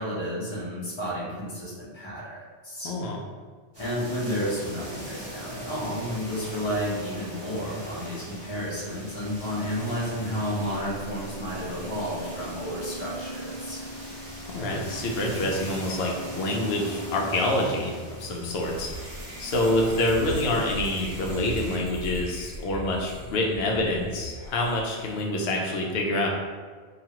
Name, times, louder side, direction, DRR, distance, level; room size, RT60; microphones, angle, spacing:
voice 1, 0.0-2.9 3.8-13.9, equal, 25° left, -7 dB, 0.8 m, -31 dB
voice 2, 2.8-3.2 14.5-17.9 18.2-19.0 19.4-26.3, left 1 dB, 70° left, 0 dB, 0.8 m, -26 dB
sound 1, 3.7-21.8, equal, 25° right, 0.9 m, -41 dB
sound 2, 8.9-19.0, equal, 55° right, 0.4 m, -42 dB
sound 3, 18.6-25.3, equal, 80° right, 1.1 m, -39 dB
3.0 x 2.4 x 2.9 m, 1.5 s
omnidirectional pair, 1.1 m